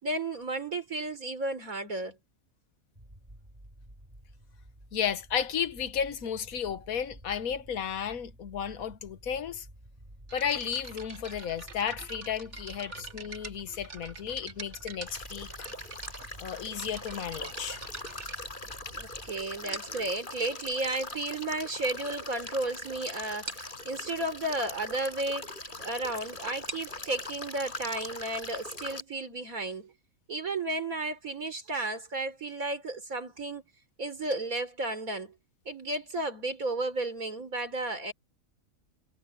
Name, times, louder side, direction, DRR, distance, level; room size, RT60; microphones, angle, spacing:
voice 1, 0.0-2.2 18.9-25.5 25.8-29.9 30.3-33.6 34.0-35.3 35.7-38.1, right 2 dB, 85° right, 4.4 m, -33 dB
sound 1, 3.0-19.3, right 1 dB, 25° right, 4.6 m, -51 dB
voice 2, 4.9-9.7 10.3-15.7 16.4-17.8, left 8 dB, 85° left, 1.5 m, -33 dB
sound 2, 10.3-19.1 19.7-20.1 21.0-21.1 21.7-21.8 22.0-22.3 22.6-22.7 22.9-23.0 23.5-23.8 26.4-29.9, right 4 dB, 55° right, 2.1 m, -45 dB
Male speech man speaking / Stream / Trickle dribble, 15.1-29.0, left 2 dB, 35° left, 5.5 m, -41 dB
omnidirectional pair, 1.4 m